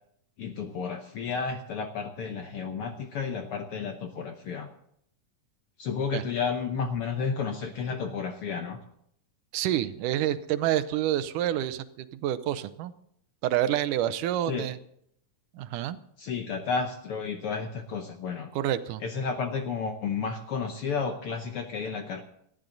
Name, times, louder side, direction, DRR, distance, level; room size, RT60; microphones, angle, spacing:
voice 1, 0.4-4.7 5.8-8.8 14.5-14.7 16.2-18.5 19.0-22.2, left 5 dB, 65° left, 6 dB, 1.4 m, -32 dB
voice 2, 9.5-12.9 13.4-14.8 15.5-16.0 18.6-19.0, right 12 dB, 90° right, 13 dB, 2.3 m, -28 dB
19.0 x 14.0 x 3.9 m, 0.71 s
omnidirectional pair, 3.6 m